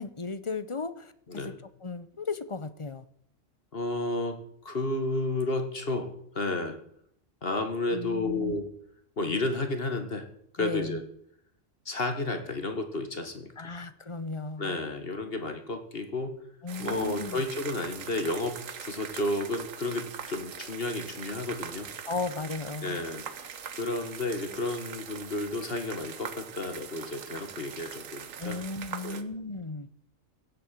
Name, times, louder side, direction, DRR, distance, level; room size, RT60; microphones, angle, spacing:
voice 1, 0.0-1.5 1.8-3.0 7.9-8.5 10.6-11.0 13.6-14.8 16.6-17.4 22.1-23.0 28.4-29.9, left 3 dB, 25° left, 13 dB, 0.8 m, -35 dB
voice 2, 3.7-6.8 7.4-8.7 9.2-10.3 10.5-11.0 11.9-13.7 14.6-16.4 16.8-21.9 22.8-28.6 29.0-29.3, left 2 dB, 45° left, 7 dB, 2.0 m, -32 dB
sound 1, 16.7-29.2, right 7 dB, 75° right, 1.5 m, -42 dB
16.0 x 8.5 x 7.6 m, 0.68 s
omnidirectional pair, 1.4 m